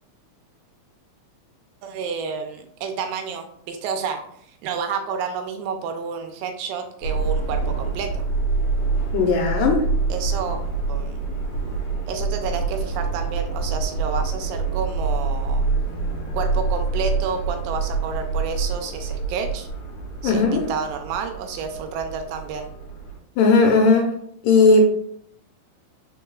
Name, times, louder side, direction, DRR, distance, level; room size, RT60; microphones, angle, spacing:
voice 1, 1.8-4.2 4.6-8.3 10.1-10.6 10.9-11.3 12.1-15.7 16.3-19.7 20.2-22.7, right 5 dB, 80° right, 5 dB, 2.2 m, -30 dB
Subway metro underground, 7.0-23.2, right 4 dB, 65° left, 1.3 m, -26 dB
voice 2, 9.1-9.8 20.2-20.7 23.4-24.1 24.4-24.8, left 4 dB, 80° left, 2 dB, 2.0 m, -16 dB
4.7 x 4.5 x 2.3 m, 0.68 s
omnidirectional pair, 4.1 m